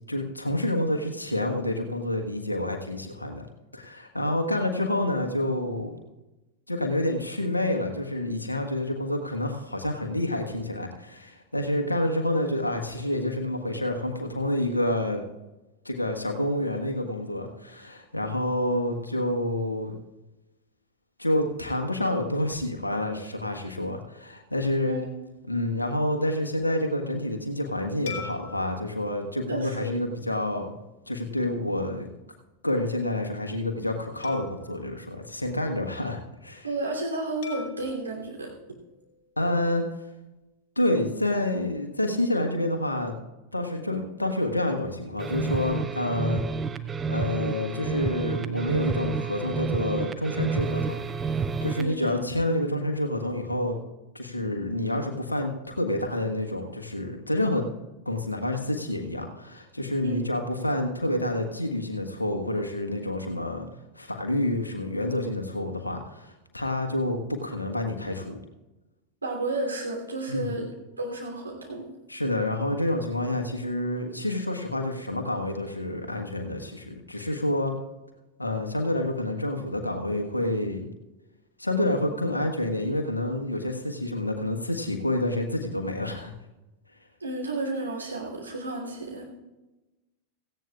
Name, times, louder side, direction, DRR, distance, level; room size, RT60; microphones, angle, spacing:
voice 1, 0.1-3.5 3.7-6.0 6.7-15.2 15.8-19.9 21.2-25.0 25.5-30.8 31.1-32.1 32.6-36.7 39.4-39.8 40.8-43.1 43.5-46.4 47.1-51.0 51.4-53.7 54.1-57.6 58.0-63.7 64.0-68.4 70.3-70.5 72.1-77.8 78.4-80.9 81.6-86.3, left 1 dB, 85° left, 4 dB, 1.4 m, -28 dB
sound 1, 28.1-30.7 31.3-31.5 34.2-36.0 37.4-39.7, left 5 dB, 55° left, 2.1 m, -45 dB
voice 2, 29.5-29.9 36.6-38.5 51.7-52.2 60.0-60.2 69.2-70.7 71.0-71.9 87.2-89.3, right 2 dB, 80° right, -1 dB, 3.0 m, -32 dB
sound 2, 45.2-51.9, right 5 dB, 20° right, 0.6 m, -30 dB
17.0 x 15.5 x 2.4 m, 1.1 s
figure-of-eight pair, 90°, 0 cm